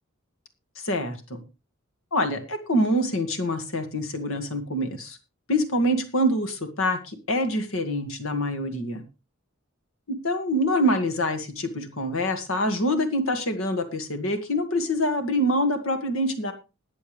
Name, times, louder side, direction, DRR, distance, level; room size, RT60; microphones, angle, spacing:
voice 1, 0.8-1.4 2.1-5.2 5.5-9.0 10.2-16.5, equal, 70° left, 7 dB, 2.0 m, -25 dB
20.5 x 7.2 x 3.3 m, 0.30 s
head